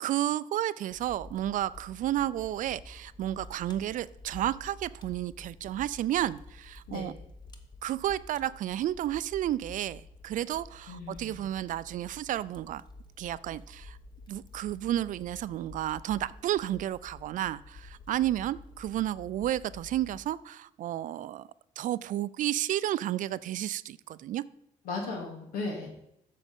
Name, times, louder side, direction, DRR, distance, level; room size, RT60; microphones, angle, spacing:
voice 1, 0.0-7.1 7.8-12.8 13.2-14.0 14.3-21.5 21.8-24.4, right 12 dB, 60° right, 18 dB, 0.4 m, -32 dB
Fire, 0.9-20.2, left 2 dB, 30° left, 1.1 m, -50 dB
voice 2, 10.9-11.4 24.8-25.9, left 3 dB, 90° left, 1 dB, 2.4 m, -36 dB
7.2 x 6.6 x 5.4 m, 0.78 s
cardioid pair, 90°, 15 cm